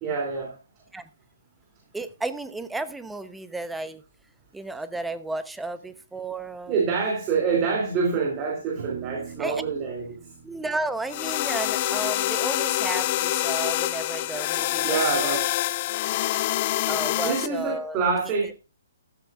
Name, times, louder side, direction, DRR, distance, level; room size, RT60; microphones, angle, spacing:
voice 1, 0.0-0.6 6.7-10.3 14.8-15.6 17.2-18.5, right 5 dB, 25° right, 0 dB, 3.0 m, -26 dB
voice 2, 1.9-4.0 4.5-6.7 9.4-9.6 10.4-15.4 16.9-18.0, right 2 dB, 5° right, 12 dB, 0.9 m, -33 dB
sound 1, 8.8-13.3, right 7 dB, 55° right, 1.5 m, -44 dB
sound 2, 11.1-17.5, left 15 dB, 35° left, 0.6 m, -26 dB
15.0 x 12.5 x 2.5 m, 0.30 s
figure-of-eight pair, 130°, 0 cm